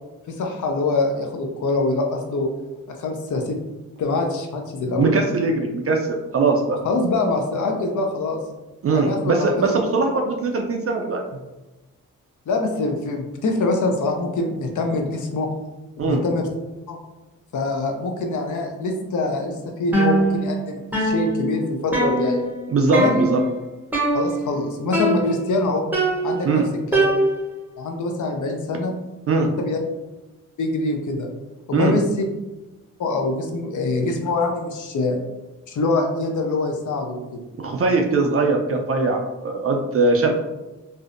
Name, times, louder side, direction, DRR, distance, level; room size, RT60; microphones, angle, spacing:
voice 1, 0.3-2.5 3.0-3.6 4.0-5.2 6.8-8.4 8.9-9.8 10.1-10.2 12.5-15.5 16.0-16.5 16.9-17.0 17.5-22.4 22.9-23.2 24.1-25.8 26.2-26.6 26.9-27.1 27.8-28.9 29.6-29.8 30.6-31.3 31.7-32.2 33.0-35.2 35.7-37.4, left 2 dB, 60° left, 2 dB, 0.6 m, -24 dB
voice 2, 5.0-6.8 8.8-11.2 16.0-16.2 22.7-23.4 26.4-26.7 29.3-29.5 31.7-32.0 37.6-40.3, right 3 dB, 40° right, 2 dB, 0.4 m, -21 dB
sound 1, 19.9-20.6 20.9-22.6 22.9-23.5 23.9-24.6 24.9-25.6 25.9-27.6, right 1 dB, 5° right, 0.7 m, -22 dB
2.6 x 2.1 x 2.5 m, 1.1 s
cardioid pair, 55°, 35 cm